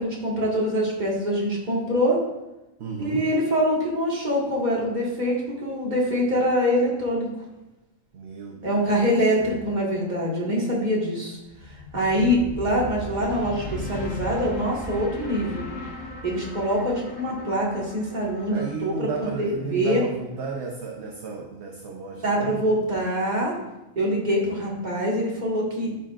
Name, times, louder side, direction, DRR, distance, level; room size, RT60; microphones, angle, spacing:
voice 1, 0.0-2.2 3.0-7.3 8.6-11.4 11.9-15.7 16.2-20.0 22.2-23.6 24.0-25.9, equal, 30° right, -4 dB, 2.0 m, -24 dB
voice 2, 2.8-3.3 8.1-8.9 9.4-9.5 18.5-23.0, right 4 dB, 55° right, 0 dB, 1.0 m, -34 dB
sound 1, 11.4-20.6, left 2 dB, 80° left, 2.1 m, -37 dB
11.5 x 5.6 x 2.5 m, 1.0 s
omnidirectional pair, 1.4 m